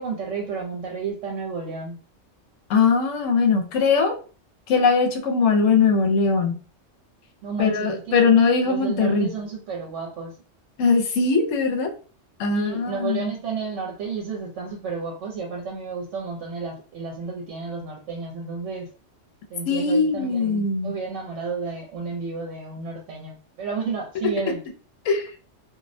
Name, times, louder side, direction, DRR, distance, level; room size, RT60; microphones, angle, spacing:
voice 1, 0.0-2.0 7.4-10.4 12.5-18.9 19.5-24.6, right 5 dB, 75° right, -1 dB, 0.9 m, -32 dB
voice 2, 2.7-4.1 4.7-6.5 7.6-9.3 10.8-11.9 12.4-13.3 19.7-20.9 25.1-25.3, left 5 dB, 85° left, 4 dB, 0.9 m, -20 dB
2.4 x 2.0 x 2.5 m, 0.39 s
omnidirectional pair, 1.3 m